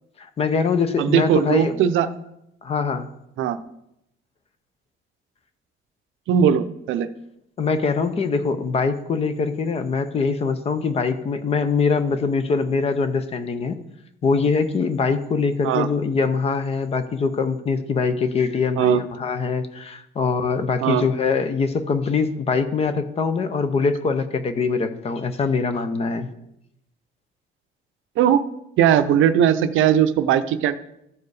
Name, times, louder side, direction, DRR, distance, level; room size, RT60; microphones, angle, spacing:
voice 1, 0.2-1.8 2.6-3.1 7.6-13.8 14.2-26.3, left 4 dB, 30° left, 10 dB, 0.6 m, -23 dB
voice 2, 1.0-2.1 3.4-3.6 6.3-7.1 15.6-15.9 18.8-19.0 20.8-21.0 28.2-28.5 28.8-30.8, right 9 dB, 70° right, 11 dB, 0.6 m, -19 dB
13.5 x 4.7 x 4.8 m, 0.83 s
cardioid pair, 180°, 21 cm